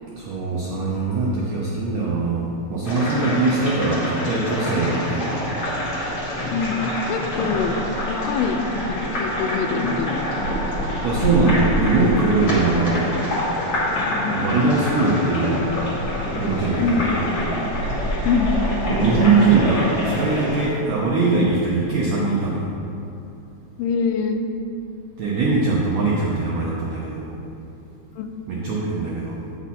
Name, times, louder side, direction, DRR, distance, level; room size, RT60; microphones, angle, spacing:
voice 1, 0.1-5.4 11.0-13.1 14.3-15.7 16.3-17.4 18.9-22.7 25.2-27.3 28.5-29.5, right 3 dB, 80° right, -5 dB, 1.6 m, -21 dB
sound 1, 2.8-20.7, left 1 dB, 45° left, 1.3 m, -26 dB
voice 2, 6.5-7.7 8.0-8.6 8.9-10.2 14.1-14.4 16.8-17.1 18.3-18.8 23.8-24.4 28.2-28.3, left 5 dB, 85° left, 5 dB, 2.2 m, -24 dB
8.1 x 6.0 x 4.2 m, 2.6 s
omnidirectional pair, 4.2 m